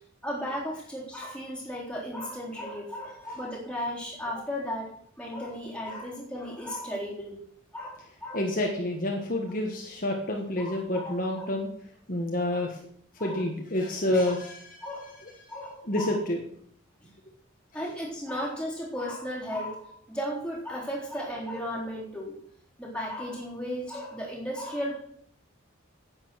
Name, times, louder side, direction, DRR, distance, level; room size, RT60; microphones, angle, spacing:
voice 1, 0.2-4.9 5.2-7.4 7.7-8.4 10.6-11.5 12.3-12.6 13.2-13.4 14.3-14.4 14.8-16.2 17.0-17.1 17.7-22.4 22.8-25.0, equal, 5° left, -4 dB, 3.8 m, -35 dB
voice 2, 8.3-11.7 12.1-12.8 13.2-14.8 15.2-15.3 15.9-16.4, left 1 dB, 40° left, 1 dB, 1.5 m, -28 dB
10.5 x 8.8 x 6.3 m, 0.64 s
head